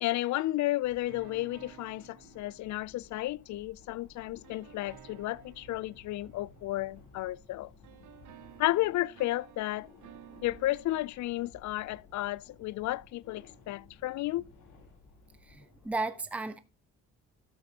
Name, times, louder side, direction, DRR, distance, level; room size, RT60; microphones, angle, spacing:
voice 1, 0.0-7.7 8.6-9.9 10.4-14.5, left 16 dB, 70° left, 0.4 m, -32 dB
sound 1, 0.8-16.0, left 3 dB, 85° left, 4.0 m, -57 dB
sound 2, 1.1-3.7 4.4-7.5 7.8-11.1, right 11 dB, 80° right, 1.0 m, -55 dB
voice 2, 15.5-16.6, right 3 dB, 5° right, 0.8 m, -34 dB
13.0 x 8.3 x 2.8 m
cardioid pair, 90°, 30 cm